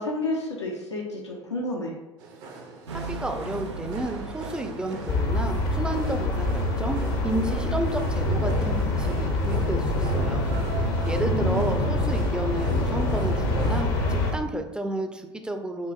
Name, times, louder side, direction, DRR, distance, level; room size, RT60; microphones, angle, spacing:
voice 1, 0.0-1.9 11.2-11.8, left 2 dB, 85° left, -3 dB, 0.8 m, -30 dB
sound 1, 2.2-13.8, right 4 dB, 55° right, 0.7 m, -42 dB
sound 2, 2.9-10.9, right 3 dB, 85° right, 0.4 m, -39 dB
voice 2, 3.1-10.5 10.8-15.9, right 1 dB, 5° right, 5 dB, 0.5 m, -31 dB
sound 3, 5.1-14.3, left 1 dB, 55° left, 0.8 m, -25 dB
6.8 x 2.5 x 2.4 m, 1.0 s
figure-of-eight pair, 70°, 14 cm